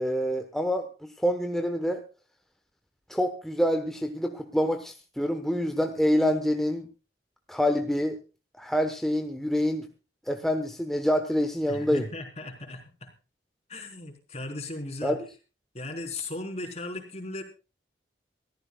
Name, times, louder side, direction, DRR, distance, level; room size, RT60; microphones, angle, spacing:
voice 1, 0.0-2.0 3.1-6.9 7.5-8.2 8.5-9.9 10.3-12.1 15.0-15.2, equal, ahead, 5 dB, 1.0 m, -26 dB
voice 2, 11.7-13.1 13.7-15.2 15.7-17.4, left 2 dB, 35° left, 3 dB, 3.7 m, -37 dB
24.0 x 14.5 x 2.3 m, 0.33 s
head